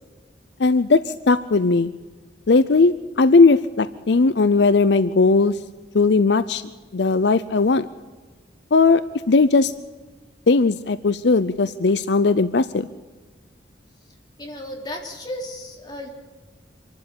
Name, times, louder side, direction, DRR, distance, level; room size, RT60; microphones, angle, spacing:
voice 1, 0.6-1.9 2.5-5.6 5.9-6.6 6.9-7.9 8.7-9.0 9.3-9.7 10.5-12.9, left 3 dB, 65° left, 14 dB, 0.6 m, -18 dB
voice 2, 14.4-16.1, left 1 dB, 25° left, -1 dB, 3.7 m, -34 dB
25.5 x 12.5 x 8.6 m, 1.4 s
head